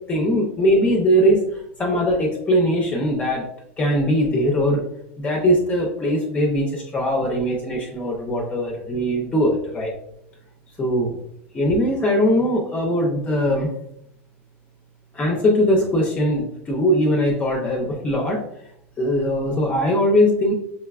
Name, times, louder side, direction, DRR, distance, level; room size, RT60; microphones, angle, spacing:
voice 1, 0.1-3.4 3.8-4.8 5.2-9.9 10.8-11.2 11.5-13.7 15.1-18.4 19.0-20.5, equal, 20° left, 0 dB, 0.5 m, -20 dB
5.2 x 2.2 x 2.3 m, 0.77 s
supercardioid pair, 145°, 7 cm